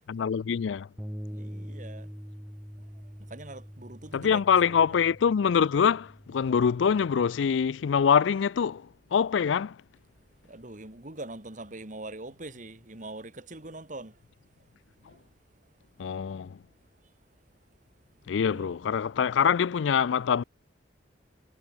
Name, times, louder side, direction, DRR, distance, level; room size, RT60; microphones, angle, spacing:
voice 1, 0.1-0.9 4.1-9.8 16.0-16.6 18.3-20.4, left 7 dB, 85° left, 0.4 m, -24 dB
Bass guitar, 1.0-7.2, equal, 5° right, 3.8 m, -44 dB
voice 2, 1.3-2.1 3.3-4.4 4.7-5.0 10.5-14.1 15.0-15.2 18.4-18.7, right 2 dB, 45° right, 2.3 m, -43 dB
head